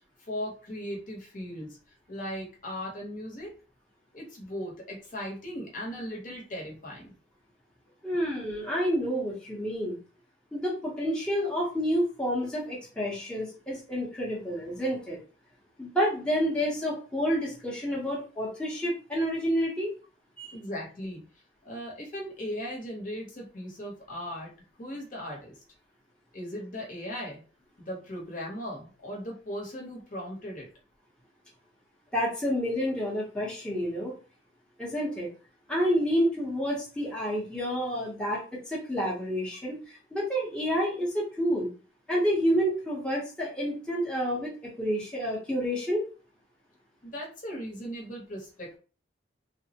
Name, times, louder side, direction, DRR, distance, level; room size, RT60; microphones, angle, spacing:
voice 1, 0.3-1.8 2.1-3.5 4.1-7.1 20.5-21.3 21.6-24.5 24.8-25.5 26.3-27.4 27.8-30.7 47.0-48.8, equal, 45° left, -2 dB, 0.9 m, -38 dB
voice 2, 8.0-10.0 10.5-15.2 15.8-19.9 20.4-20.5 32.1-34.1 34.8-35.3 35.7-41.7 42.1-44.5 44.8-46.0, equal, 5° left, -6 dB, 0.8 m, -29 dB
3.3 x 2.0 x 2.8 m, 0.37 s
head